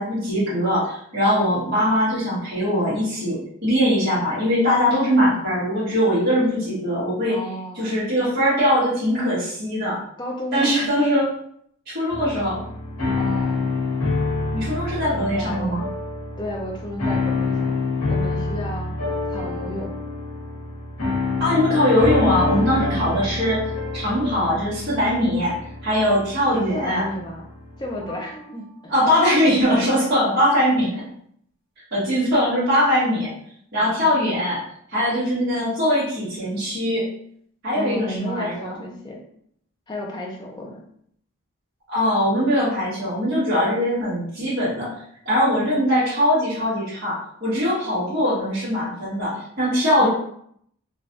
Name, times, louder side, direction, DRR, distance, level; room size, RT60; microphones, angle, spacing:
voice 1, 0.0-7.4 7.7-10.0 10.5-11.2 11.9-12.6 14.5-15.8 21.4-23.6 23.9-25.6 25.8-27.1 28.9-30.9 31.9-33.3 33.7-34.6 34.9-37.0 37.6-38.7 41.9-44.9 45.2-50.1, equal, 50° right, -12 dB, 1.4 m, -21 dB
voice 2, 7.3-8.0 10.2-10.8 13.2-13.7 15.1-15.8 16.4-17.7 18.1-18.9 19.3-20.0 22.8-23.3 26.4-27.4 27.8-28.9 33.8-34.2 37.7-39.2 39.9-40.8 50.0-50.1, equal, 20° left, -1 dB, 0.5 m, -33 dB
sound 1, 12.1-28.4, left 3 dB, 75° left, 1.2 m, -27 dB
3.3 x 2.3 x 2.5 m, 0.67 s
head